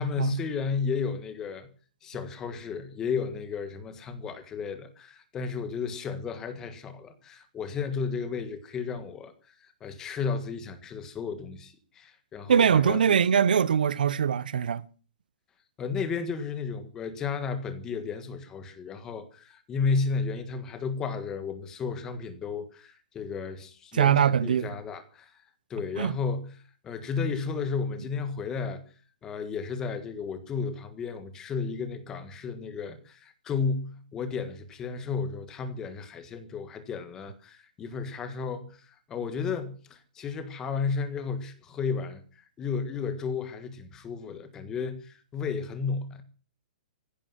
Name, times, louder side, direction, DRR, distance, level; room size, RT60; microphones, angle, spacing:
voice 1, 0.0-1.7 2.0-13.2 15.8-25.3 25.7-26.5 26.8-28.8 29.2-46.2, left 5 dB, 10° left, 1.6 m, -33 dB
voice 2, 12.5-14.8 23.9-24.7 26.0-26.1, right 8 dB, 75° right, 1.0 m, -22 dB
15.5 x 11.5 x 7.5 m
hypercardioid pair, 175°, 5 cm